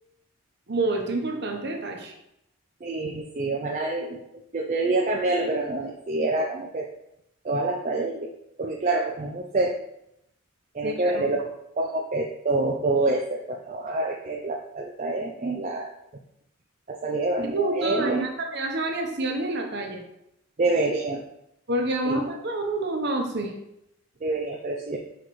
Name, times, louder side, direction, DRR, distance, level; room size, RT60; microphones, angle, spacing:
voice 1, 0.7-2.1 10.8-11.2 17.4-20.0 21.7-23.5, right 2 dB, 50° right, 2 dB, 0.9 m, -28 dB
voice 2, 2.8-4.2 4.5-6.9 7.4-8.3 8.6-9.8 10.7-11.5 11.8-15.9 16.9-18.3 20.6-21.3 22.1-22.2 24.2-25.0, right 2 dB, 35° right, 1 dB, 0.4 m, -27 dB
5.9 x 5.0 x 3.2 m, 0.82 s
head